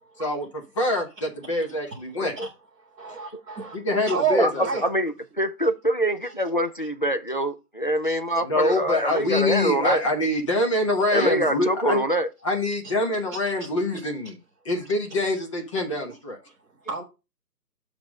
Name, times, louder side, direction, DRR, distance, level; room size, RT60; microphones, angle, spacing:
voice 1, 0.2-2.4 3.1-3.2 3.7-4.8 8.4-12.0 12.4-14.3 14.6-16.4, left 2 dB, 20° left, 1.0 m, -25 dB
voice 2, 2.9-3.8 4.1-4.9 6.2-6.3 8.0-8.2 12.8-12.9 16.9-17.0, right 6 dB, 5° right, 1.0 m, -28 dB
voice 3, 4.4-10.0 11.1-12.3, right 1 dB, 35° left, 0.4 m, -24 dB
7.1 x 3.4 x 6.2 m
figure-of-eight pair, 150°, 48 cm